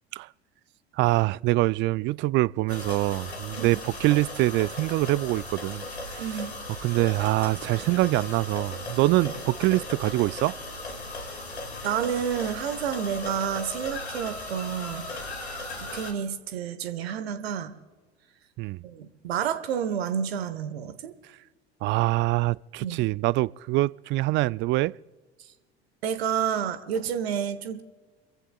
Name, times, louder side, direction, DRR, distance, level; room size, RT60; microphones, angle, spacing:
voice 1, 0.9-6.2 6.8-10.6 18.6-18.8 21.8-24.9, right 19 dB, 35° right, 0.4 m, -24 dB
sound 1, 2.7-16.1, left 2 dB, 85° left, 2.3 m, -37 dB
voice 2, 6.2-6.5 11.8-15.1 15.3-17.7 18.8-21.2 22.8-23.1 25.4-25.5 26.0-27.8, right 8 dB, 70° right, 1.2 m, -30 dB
29.5 x 15.0 x 2.4 m
figure-of-eight pair, 70°, 32 cm